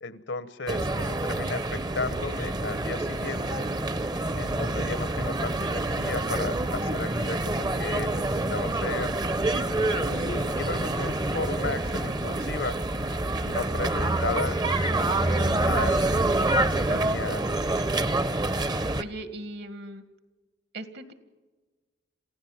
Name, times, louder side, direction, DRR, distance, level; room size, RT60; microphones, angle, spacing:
voice 1, 0.0-3.7 4.4-9.1 10.1-12.8 13.2-16.1 16.6-17.5, left 3 dB, 80° left, 15 dB, 1.1 m, -35 dB
sound 1, 0.7-19.0, right 2 dB, 25° right, 0.8 m, -27 dB
sound 2, 8.6-13.2 13.4-13.5, left 3 dB, 45° left, 0.6 m, -43 dB
voice 2, 18.5-20.0 20.7-21.1, right 2 dB, 60° right, 10 dB, 1.9 m, -39 dB
27.5 x 16.0 x 7.3 m, 1.2 s
head